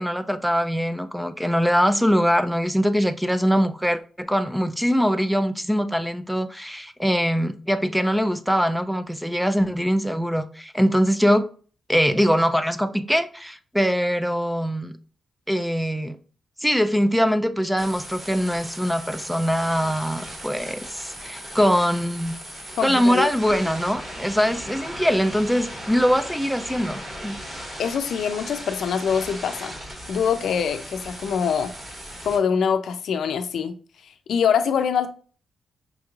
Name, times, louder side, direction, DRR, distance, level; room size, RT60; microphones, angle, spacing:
voice 1, 0.0-11.5 11.9-14.9 15.5-16.2 16.6-22.4 22.8-27.4, equal, ahead, 0.3 m, -22 dB
sound 1, 17.8-32.4, equal, 35° right, 1.6 m, -37 dB
voice 2, 22.8-23.3 27.8-29.7 30.1-31.7 32.2-33.7 34.3-35.1, left 7 dB, 80° left, 0.4 m, -24 dB
5.2 x 3.0 x 2.4 m
cardioid pair, 110°, 0 cm